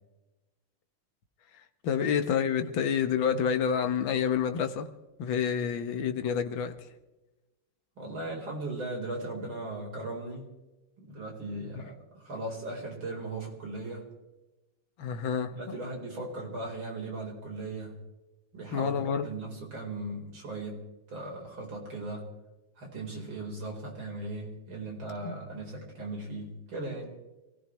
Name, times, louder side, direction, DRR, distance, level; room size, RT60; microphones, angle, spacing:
voice 1, 1.5-4.9 5.2-6.9 11.7-11.8 15.0-15.8 18.7-19.3 25.2-25.3, left 7 dB, 65° left, 1.8 m, -29 dB
voice 2, 8.0-10.5 11.0-14.1 15.5-18.0 18.5-18.9 19.2-22.3 22.8-27.1, right 2 dB, 65° right, 5.0 m, -38 dB
26.5 x 17.0 x 3.2 m
omnidirectional pair, 2.4 m